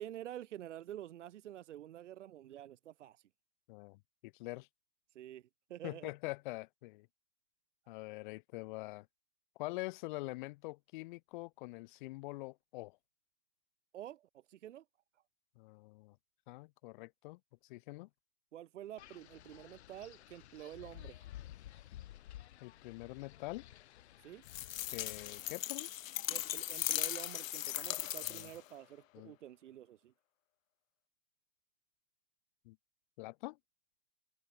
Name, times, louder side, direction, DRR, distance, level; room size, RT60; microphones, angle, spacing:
voice 1, 0.0-3.2 5.1-6.1 13.9-14.8 18.5-21.3 24.2-24.4 26.3-30.1, right 12 dB, 60° right, 1.3 m, -49 dB
voice 2, 3.7-4.7 5.8-7.1 7.9-9.1 9.6-13.0 15.6-16.2 16.5-18.1 22.6-23.7 24.9-25.9 28.3-28.4 29.1-29.4 32.6-32.8 33.2-33.6, left 22 dB, 40° left, 2.6 m, -45 dB
Wind, 19.0-25.5, left 13 dB, 55° left, 4.6 m, -53 dB
sound 1, 24.5-28.7, left 13 dB, 80° left, 0.6 m, -38 dB
hypercardioid pair, 155°, 40 cm